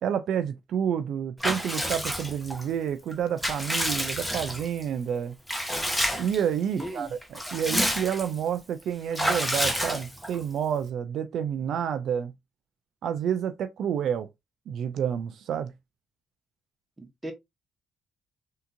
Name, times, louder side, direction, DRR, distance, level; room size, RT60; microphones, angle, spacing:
voice 1, 0.0-5.3 6.2-12.3 13.0-14.3 14.7-15.7, right 8 dB, 75° right, 0.3 m, -29 dB
Water / Bathtub (filling or washing) / Liquid, 1.4-2.6 3.1-4.8 5.5-6.4 6.8-6.9 7.2-8.4 9.1-10.4, equal, ahead, 1.0 m, -29 dB
voice 2, 6.8-7.1 17.0-17.3, right 1 dB, 15° right, 1.2 m, -36 dB
3.5 x 2.8 x 2.5 m
cardioid pair, 90°, 0 cm